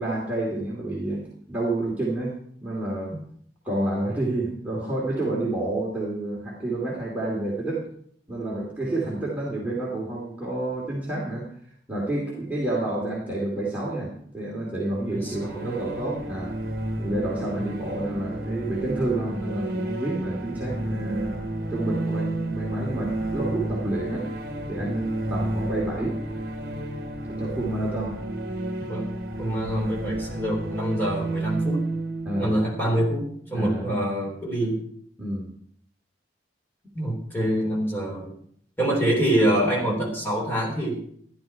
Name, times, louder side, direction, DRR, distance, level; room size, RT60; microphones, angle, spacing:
voice 1, 0.0-2.3 2.6-3.1 3.6-7.9 8.3-11.5 11.9-16.5 17.0-21.4 21.7-24.3 24.7-26.2 27.2-28.2 32.2-32.5 33.5-33.8 35.2-35.5, right 2 dB, 10° right, -6 dB, 2.5 m, -29 dB
voice 2, 15.1-15.8 17.5-17.6 28.9-29.1 29.4-31.8 32.4-34.8 36.9-38.3 38.8-41.0, right 1 dB, 10° left, -2 dB, 3.4 m, -25 dB
sound 1, 15.1-33.7, right 1 dB, 50° right, 1.2 m, -31 dB
14.0 x 11.0 x 4.5 m, 0.63 s
head